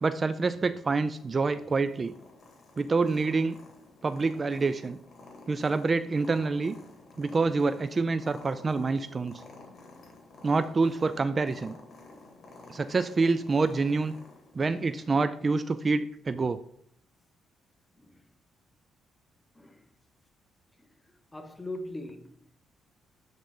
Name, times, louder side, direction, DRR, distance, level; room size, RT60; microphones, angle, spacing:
voice 1, 0.0-2.1 2.8-3.6 4.0-5.0 5.5-6.8 7.2-9.4 10.4-11.8 12.7-14.1 14.6-16.6, right 4 dB, 35° right, 0.3 m, -27 dB
Purr, 1.1-15.1, left 3 dB, 55° left, 2.1 m, -51 dB
voice 2, 21.3-22.4, left 1 dB, 10° left, 0.9 m, -40 dB
10.0 x 3.9 x 3.7 m
cardioid pair, 90°, 0 cm